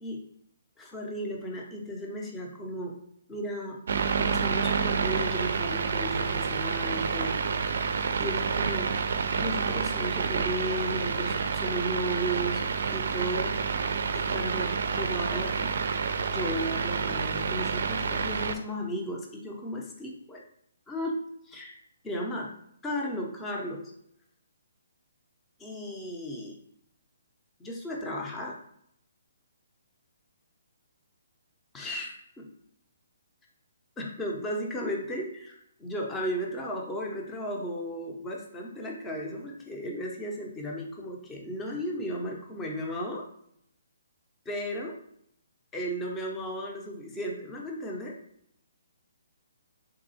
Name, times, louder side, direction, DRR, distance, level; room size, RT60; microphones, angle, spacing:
voice 1, 0.8-3.0 3.3-3.8 4.1-7.4 8.2-9.0 9.4-12.6 12.9-13.6 14.1-15.7 16.3-20.4 20.9-21.8 22.0-22.5 22.8-23.8 25.6-26.5 27.6-28.6 31.7-32.4 34.0-43.2 44.5-44.9 45.7-48.1, equal, 10° left, -1 dB, 0.6 m, -35 dB
sound 1, 3.9-18.6, right 5 dB, 65° right, 0.4 m, -29 dB
3.7 x 2.3 x 4.1 m, 0.71 s
hypercardioid pair, 155°, 0 cm